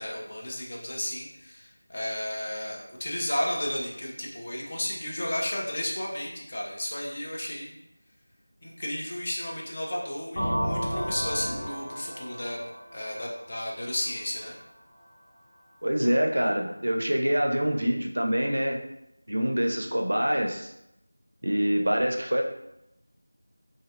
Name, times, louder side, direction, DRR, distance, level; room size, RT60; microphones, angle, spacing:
voice 1, 0.0-7.7 8.6-12.7 12.9-14.5, left 1 dB, 30° left, -2 dB, 0.3 m, -33 dB
sound 1, 10.4-14.1, equal, 75° left, 0.8 m, -32 dB
voice 2, 15.8-18.8 19.3-20.7 21.4-22.4, equal, 75° right, 2 dB, 0.4 m, -25 dB
2.5 x 2.1 x 2.4 m, 0.86 s
figure-of-eight pair, 175°, 0 cm